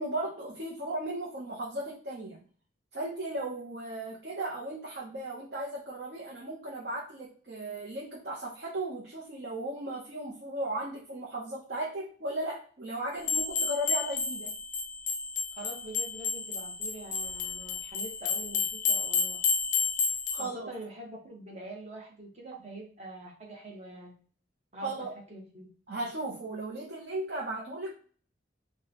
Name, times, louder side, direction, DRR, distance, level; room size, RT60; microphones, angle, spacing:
voice 1, 0.0-2.4 2.9-14.5 20.3-20.7 24.8-25.1 25.9-27.9, right 1 dB, 60° right, -4 dB, 0.8 m, -36 dB
sound 1, 13.2-20.5, left 5 dB, 45° left, 0.5 m, -31 dB
voice 2, 15.5-19.4 20.3-24.1 24.7-25.7, right 1 dB, 35° right, 0 dB, 1.0 m, -44 dB
4.7 x 2.2 x 2.8 m, 0.43 s
head